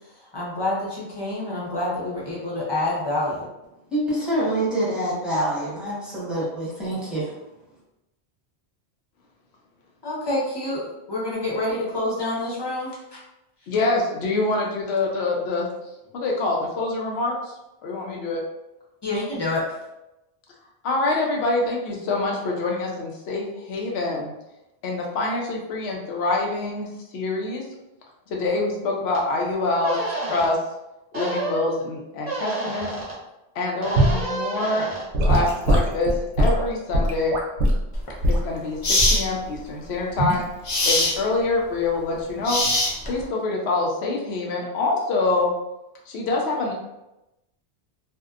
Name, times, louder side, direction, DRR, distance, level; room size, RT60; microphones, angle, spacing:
voice 1, 0.3-3.5 10.0-13.2 19.0-19.7, left 2 dB, 25° left, -6 dB, 0.7 m, -27 dB
voice 2, 3.9-7.2, right 1 dB, ahead, -9 dB, 0.9 m, -26 dB
voice 3, 13.7-17.5 17.8-18.4 20.8-24.3 24.8-27.7 28.3-30.6 31.1-32.9 33.5-34.9 35.2-37.3 38.3-40.5 40.8-42.6 43.1-45.5 46.1-46.7, left 2 dB, 75° left, -1 dB, 0.8 m, -25 dB
sound 1, 29.1-29.2 29.8-30.5 31.1-31.6 32.2-33.1 33.8-35.0, right 2 dB, 40° right, 0.9 m, -29 dB
Gurgling / Sink (filling or washing) / Liquid, 34.0-34.2 35.1-37.8 38.2-38.5 39.0-39.3 40.2-40.4, right 1 dB, 85° right, 0.9 m, -20 dB
sound 2, 37.9-38.1 38.8-39.2 40.7-41.2 42.4-43.2, left 2 dB, 50° left, 0.4 m, -21 dB
2.7 x 2.1 x 2.4 m, 0.93 s
omnidirectional pair, 1.1 m